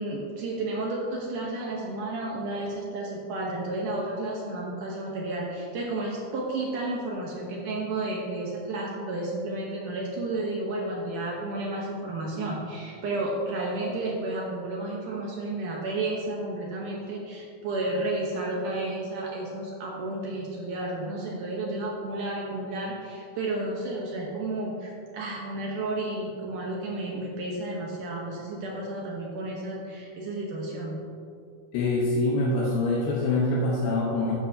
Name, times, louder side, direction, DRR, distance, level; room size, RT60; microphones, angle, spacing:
voice 1, 0.0-31.0, right 2 dB, 65° right, -2 dB, 2.2 m, -32 dB
voice 2, 31.7-34.3, left 2 dB, 85° left, -5 dB, 3.2 m, -25 dB
13.0 x 10.0 x 2.8 m, 2.5 s
omnidirectional pair, 4.5 m